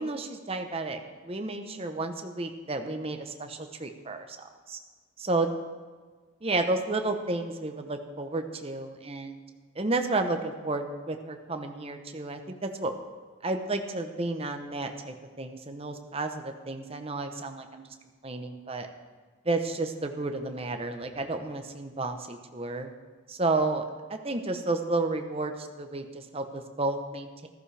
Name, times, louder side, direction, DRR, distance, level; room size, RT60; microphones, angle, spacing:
voice 1, 0.0-4.8 5.3-5.5 6.4-9.4 9.8-12.9 13.4-17.8 18.2-18.9 19.4-22.9 23.3-23.8 24.1-27.5, right 2 dB, 30° right, 6 dB, 0.9 m, -32 dB
14.5 x 14.0 x 3.4 m, 1.4 s
head